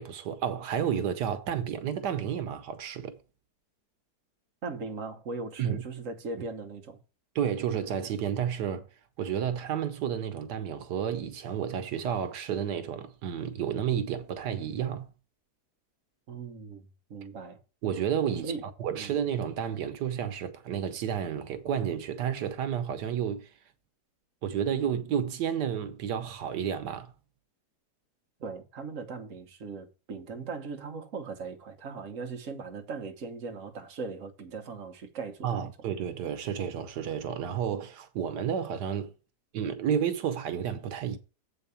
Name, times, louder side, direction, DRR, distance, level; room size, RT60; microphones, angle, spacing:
voice 1, 0.0-3.2 5.6-5.8 7.3-8.9 9.2-15.1 17.8-18.5 18.8-23.5 24.4-27.1 35.4-39.1 39.5-41.2, right 8 dB, 90° right, 1.5 m, -31 dB
voice 2, 4.6-7.0 16.3-17.6 18.4-18.6 18.9-19.1 28.4-35.7, right 4 dB, 55° right, 1.4 m, -39 dB
7.7 x 4.7 x 6.9 m
omnidirectional pair, 1.7 m